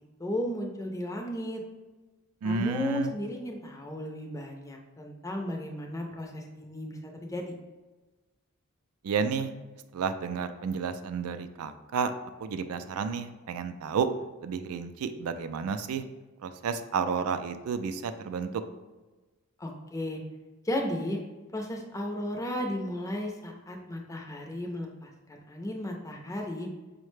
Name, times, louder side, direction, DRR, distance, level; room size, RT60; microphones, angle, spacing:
voice 1, 0.2-1.6 2.4-7.5 19.6-20.2 20.6-21.2 21.5-26.7, left 1 dB, 15° left, 1 dB, 0.5 m, -34 dB
voice 2, 2.4-3.1 9.0-9.5 9.9-12.1 12.4-14.1 14.4-16.0 16.4-18.6, right 6 dB, 70° right, 10 dB, 0.3 m, -31 dB
5.6 x 2.1 x 3.1 m, 1.2 s
head